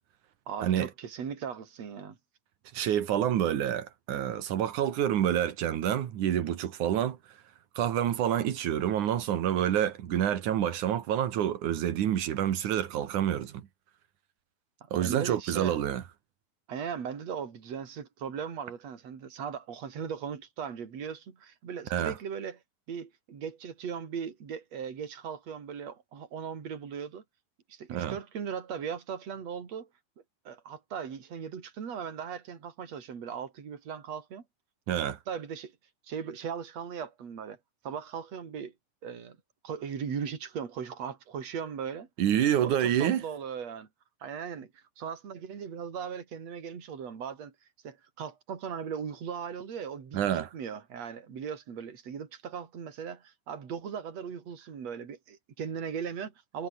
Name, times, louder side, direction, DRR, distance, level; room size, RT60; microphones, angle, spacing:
voice 1, 0.5-2.2 15.0-15.8 16.7-22.6 22.9-27.2 27.7-29.9 30.5-34.4 34.9-35.7 36.1-37.6 37.8-38.7 39.0-39.4 39.6-42.1 42.6-43.9 44.2-47.5 47.8-56.7, right 7 dB, 55° right, 4.2 m, -38 dB
voice 2, 2.7-7.2 7.8-13.6 14.9-16.0 21.9-22.1 27.9-28.2 34.9-35.2 42.2-43.2 50.1-50.5, right 10 dB, 80° right, 3.1 m, -28 dB
omnidirectional pair, 3.5 m